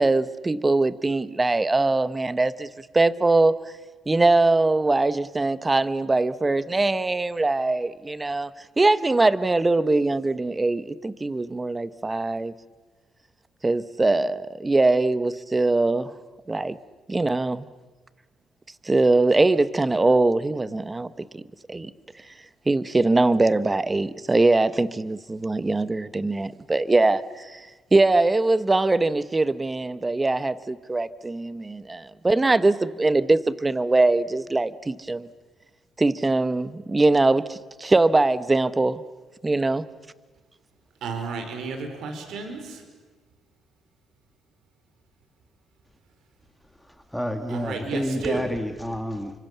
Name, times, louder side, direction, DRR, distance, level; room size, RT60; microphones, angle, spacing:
voice 1, 0.0-2.7 2.9-3.6 4.1-8.5 8.8-12.5 13.6-16.1 16.5-16.8 17.1-17.7 18.8-21.4 21.7-21.9 22.7-27.6 27.9-35.3 36.0-39.0 39.4-39.8, right 2 dB, 20° right, 1.1 m, -22 dB
voice 2, 41.0-42.8 47.5-48.4, right 4 dB, 75° right, 5.2 m, -32 dB
voice 3, 47.1-49.3, equal, ahead, 2.1 m, -29 dB
30.0 x 25.5 x 6.9 m
cardioid pair, 90°, 0 cm